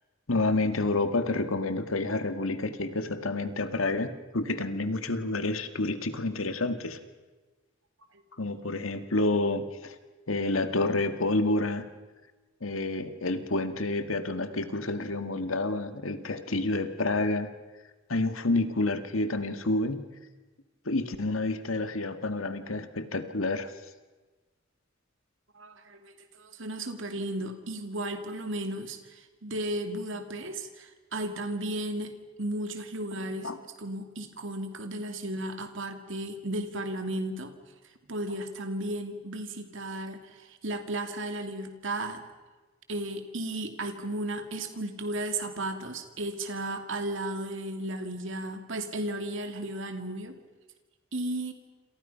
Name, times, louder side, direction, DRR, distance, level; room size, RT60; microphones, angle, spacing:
voice 1, 0.3-7.0 8.4-10.0 10.3-11.9 12.6-17.5 18.1-20.0 20.9-23.7 33.4-33.6, left 2 dB, 90° left, 9 dB, 1.8 m, -29 dB
voice 2, 25.5-32.1 32.4-33.5 33.8-37.5 38.1-42.3 42.9-50.3 51.1-51.5, right 1 dB, 70° right, 6 dB, 2.6 m, -34 dB
28.0 x 27.5 x 5.7 m, 1.2 s
head